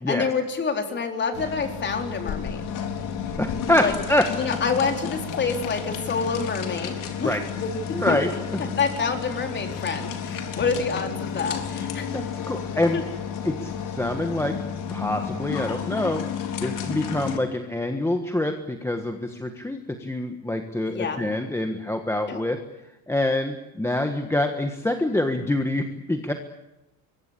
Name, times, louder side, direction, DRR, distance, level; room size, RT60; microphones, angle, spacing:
voice 1, 0.1-2.6 3.8-3.9 4.3-6.9 7.2-7.7 8.1-8.2 8.8-12.1 12.9-13.0 20.9-21.2 22.3-22.4, left 5 dB, 25° left, 5 dB, 4.1 m, -27 dB
sound 1, 1.3-17.4, left 7 dB, 45° left, 4.0 m, -32 dB
voice 2, 3.4-4.3 7.2-7.4 7.9-8.6 12.1-13.0 13.4-14.5 14.9-16.2 16.6-22.6 23.1-26.3, left 1 dB, 5° left, 5 dB, 1.5 m, -26 dB
26.0 x 23.0 x 8.4 m, 0.96 s
cardioid pair, 170°, 44 cm